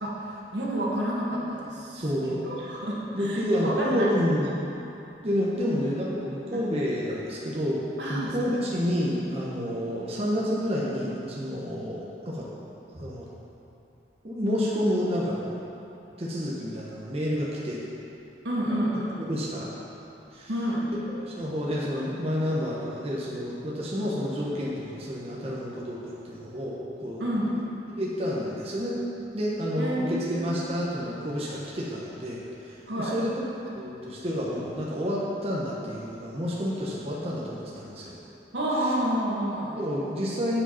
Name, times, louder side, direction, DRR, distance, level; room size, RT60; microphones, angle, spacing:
voice 1, 0.0-4.2 4.6-4.7 6.5-6.7 8.0-8.6 8.9-9.1 9.6-9.8 18.4-19.3 20.5-20.8 27.2-27.6 29.8-30.6 32.9-33.2 38.5-39.8, right 1 dB, 75° right, -5 dB, 1.6 m, -30 dB
voice 2, 1.9-2.4 3.1-4.5 5.2-12.5 12.9-13.3 14.2-15.6 16.2-17.8 19.2-19.7 20.3-20.5 21.1-27.2 27.9-29.0 29.3-33.4 33.7-38.1 38.8-38.9 39.8-40.6, equal, 35° right, -5 dB, 0.9 m, -29 dB
8.7 x 4.9 x 5.6 m, 2.9 s
head